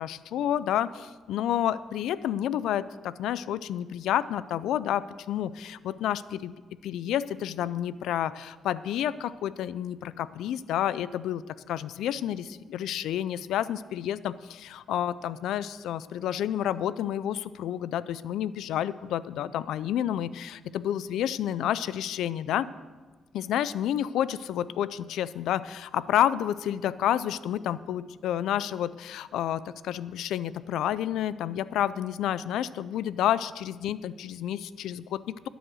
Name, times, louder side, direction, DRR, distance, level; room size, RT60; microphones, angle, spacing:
voice 1, 0.0-6.5 6.8-22.7 23.3-35.5, left 11 dB, 80° left, 17 dB, 0.4 m, -30 dB
12.0 x 9.3 x 6.3 m, 1.3 s
cardioid pair, 90°, 0 cm